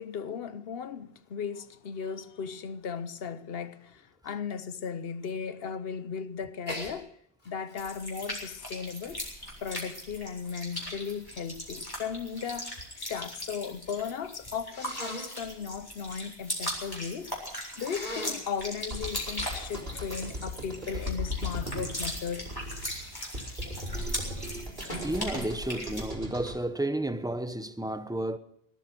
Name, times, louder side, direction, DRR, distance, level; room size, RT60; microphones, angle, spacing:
voice 1, 0.0-7.1 7.5-9.2 9.6-12.8 13.1-17.3 17.8-22.5, left 6 dB, 65° left, 1.0 m, -36 dB
Sneeze, 6.6-6.9 7.4-9.8 10.5-12.9 13.2-13.8 14.7-15.3 17.8-18.5 22.0-24.3 24.9-25.2, left 1 dB, 45° left, 3.1 m, -43 dB
sound 1, 7.8-26.1, equal, 20° left, 4.2 m, -39 dB
sound 2, 18.9-26.6, left 1 dB, 60° right, 3.9 m, -38 dB
voice 2, 25.0-28.4, right 1 dB, 5° right, 0.7 m, -32 dB
18.0 x 12.5 x 6.1 m
omnidirectional pair, 1.1 m